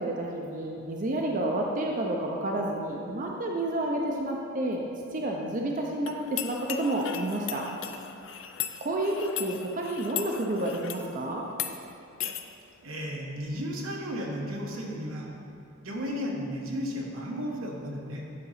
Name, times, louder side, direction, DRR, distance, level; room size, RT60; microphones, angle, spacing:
voice 1, 0.0-4.8 5.1-7.7 8.8-11.4, right 1 dB, 40° right, -1 dB, 0.5 m, -30 dB
sound 1, 6.1-11.1 11.5-11.7 12.2-12.4, left 10 dB, 65° left, 0.5 m, -37 dB
voice 2, 12.8-15.3 15.8-18.2, equal, 85° right, -1 dB, 1.2 m, -34 dB
9.5 x 3.9 x 5.7 m, 2.7 s
head